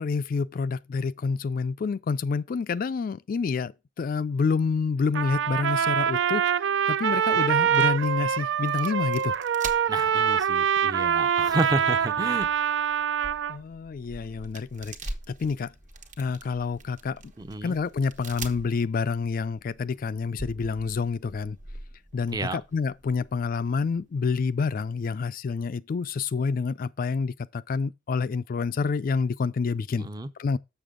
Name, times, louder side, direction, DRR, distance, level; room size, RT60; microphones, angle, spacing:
voice 1, 0.0-6.5 6.9-9.4 13.5-15.7 16.2-17.2 17.6-21.6 22.1-30.1 30.4-30.6, left 5 dB, 50° left, 0.3 m, -28 dB
Trumpet, 5.1-13.6, right 8 dB, 70° right, 0.4 m, -24 dB
sound 1, 7.5-25.2, right 2 dB, 40° right, 1.1 m, -45 dB
voice 2, 9.9-12.5 17.4-17.7 22.3-22.6 30.0-30.3, right 2 dB, 20° right, 0.6 m, -31 dB
6.9 x 6.8 x 3.7 m
head